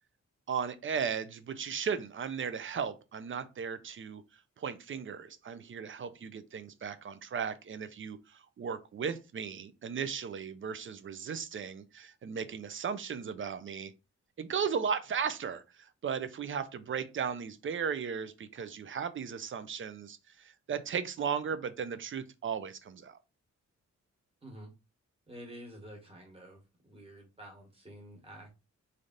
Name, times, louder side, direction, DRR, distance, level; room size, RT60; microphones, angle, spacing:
voice 1, 0.5-4.2 4.6-13.9 14.4-23.2, right 6 dB, 45° right, 0.4 m, -36 dB
voice 2, 25.3-28.6, equal, 20° right, 1.2 m, -49 dB
3.2 x 2.6 x 3.8 m
wide cardioid pair, 175°, 29 cm